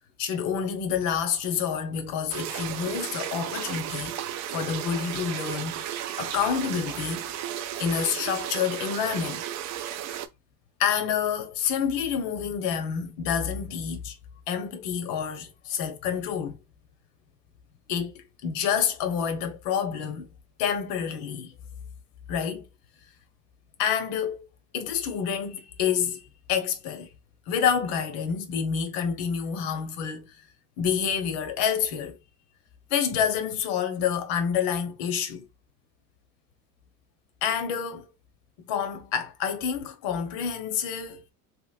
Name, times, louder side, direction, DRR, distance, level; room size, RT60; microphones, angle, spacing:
voice 1, 0.2-4.2 4.5-7.2 7.8-9.4 10.8-14.2 14.5-16.6 17.9-20.3 20.6-21.5 22.3-22.7 23.8-24.5 24.7-27.1 27.5-30.4 30.8-32.2 32.9-35.4 37.4-38.1 38.6-41.2, left 7 dB, 70° left, 0.9 m, -28 dB
sound 1, 2.3-10.3, right 11 dB, 50° right, 0.4 m, -34 dB
2.9 x 2.8 x 2.3 m
cardioid pair, 130°, 37 cm